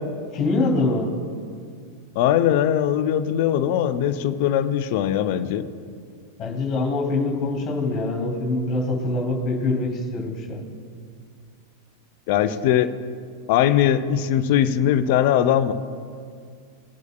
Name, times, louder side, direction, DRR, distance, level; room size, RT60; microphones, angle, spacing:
voice 1, 0.3-1.1 6.4-10.6, left 2 dB, 30° left, 3 dB, 2.5 m, -24 dB
voice 2, 2.2-5.6 12.3-12.9 13.5-15.7, left 10 dB, 50° left, 11 dB, 0.5 m, -20 dB
18.5 x 8.1 x 2.3 m, 2.2 s
figure-of-eight pair, 90°, 0 cm